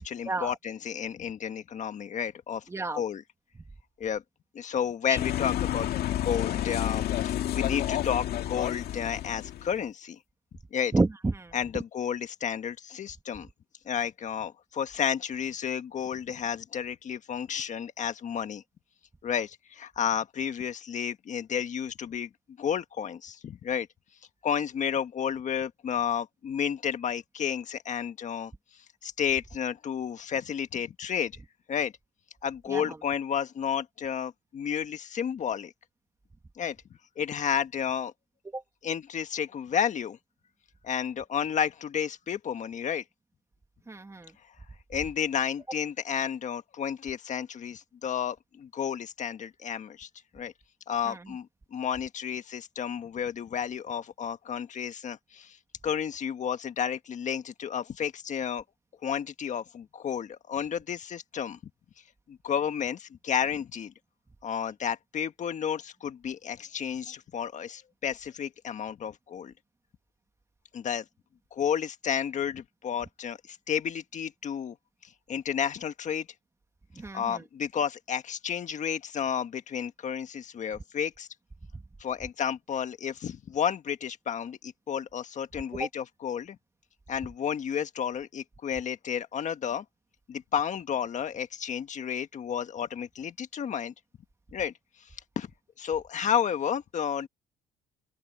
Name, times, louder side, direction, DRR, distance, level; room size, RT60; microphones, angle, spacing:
voice 1, 0.0-2.6 2.9-3.2 4.0-4.2 4.5-5.9 6.2-10.2 10.7-10.9 11.5-13.5 13.8-18.6 19.2-22.3 22.6-23.9 24.4-28.5 29.0-31.3 31.7-31.9 32.4-35.7 36.6-36.8 37.2-38.1 38.8-40.2 40.8-43.0 44.9-50.1 50.3-50.5 50.9-55.6 55.8-58.6 59.0-61.6 62.3-63.9 64.4-69.5 70.7-71.0 71.5-74.7 75.3-76.3 77.1-81.3 82.0-86.6 87.1-89.8 90.3-93.9 94.5-94.7 95.3-95.5 95.8-97.3, left 8 dB, 45° left, 1.5 m, -31 dB
voice 2, 2.7-3.0 5.1-5.2 10.9-11.5 32.7-33.0 38.5-38.6 43.9-44.3 51.1-51.2 76.9-77.4 85.7-85.9, right 3 dB, 15° right, 2.2 m, -30 dB
sound 1, 5.1-9.8, left 12 dB, 70° left, 2.0 m, -30 dB
open air
cardioid pair, 110°, 17 cm